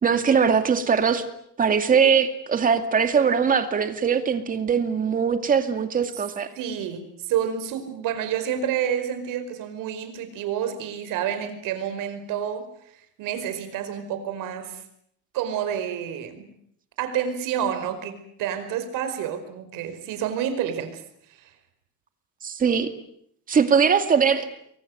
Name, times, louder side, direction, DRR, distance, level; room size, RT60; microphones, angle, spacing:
voice 1, 0.0-1.2 1.6-6.5 22.4-22.9 23.5-24.5, right 6 dB, 25° right, 8 dB, 2.3 m, -21 dB
voice 2, 6.5-14.8 15.3-16.5 17.0-21.0 21.4-21.5, right 9 dB, 70° right, 9 dB, 5.1 m, -29 dB
29.0 x 23.0 x 8.0 m, 0.70 s
cardioid pair, 180°, 33 cm